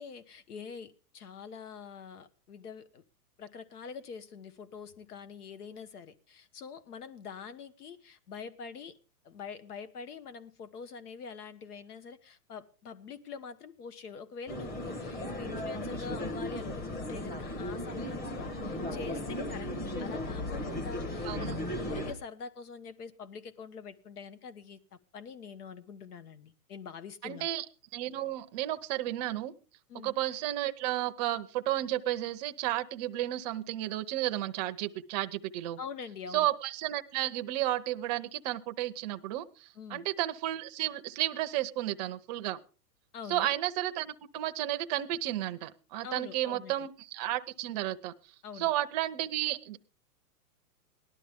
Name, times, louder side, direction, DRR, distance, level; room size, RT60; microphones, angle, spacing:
voice 1, 0.0-3.0 3.4-9.0 9.2-27.5 29.9-30.1 35.8-36.5 39.7-40.1 43.1-43.5 46.0-46.9 48.4-48.7, left 6 dB, 75° left, 13 dB, 1.5 m, -45 dB
sound 1, 14.5-22.1, left 1 dB, 20° left, 1.5 m, -36 dB
voice 2, 21.2-21.6 27.2-27.6 27.9-29.5 30.0-35.8 36.3-42.6 43.3-48.1 48.6-49.8, right 14 dB, 25° right, 10 dB, 0.7 m, -32 dB
18.5 x 11.5 x 3.6 m, 0.36 s
hypercardioid pair, 150°, 46 cm